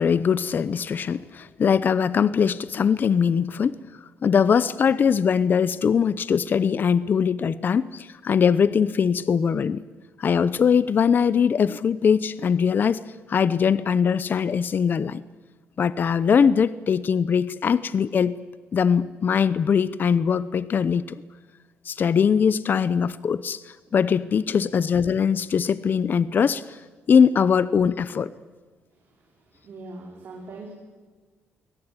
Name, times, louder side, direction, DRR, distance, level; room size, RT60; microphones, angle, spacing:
voice 1, 0.0-3.8 4.2-9.8 10.2-13.0 13.3-15.2 15.8-18.4 18.7-21.2 21.9-23.6 23.9-26.6 27.1-28.3, left 7 dB, 45° left, 16 dB, 0.8 m, -21 dB
voice 2, 29.5-30.7, right 2 dB, 55° right, -2 dB, 5.2 m, -40 dB
23.0 x 18.0 x 9.9 m, 1.3 s
cardioid pair, 105°, 5 cm